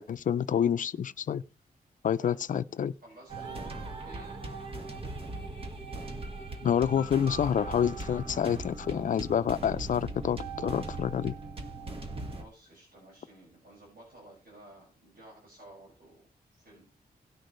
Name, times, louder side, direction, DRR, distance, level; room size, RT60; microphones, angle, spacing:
voice 1, 0.0-1.4 2.0-2.9 6.6-11.3, left 8 dB, 55° left, 0.5 m, -28 dB
voice 2, 3.0-4.4 12.3-16.2 16.5-16.8, right 1 dB, 75° right, 5.9 m, -53 dB
sound 1, 3.3-12.4, right 3 dB, 35° right, 1.5 m, -39 dB
18.5 x 6.6 x 3.1 m
wide cardioid pair, 155°, 16 cm